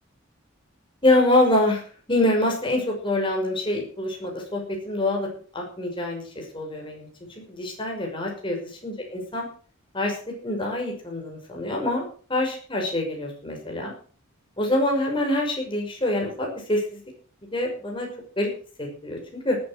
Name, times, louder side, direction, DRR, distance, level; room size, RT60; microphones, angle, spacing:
voice 1, 1.0-1.8 2.1-5.3 5.5-7.1 7.4-8.6 8.8-9.5 9.9-12.0 12.3-13.9 14.6-17.0 17.5-18.1 18.4-18.5 18.8-19.6, left 1 dB, 25° left, 0 dB, 6.1 m, -25 dB
18.5 x 8.3 x 6.6 m, 0.43 s
head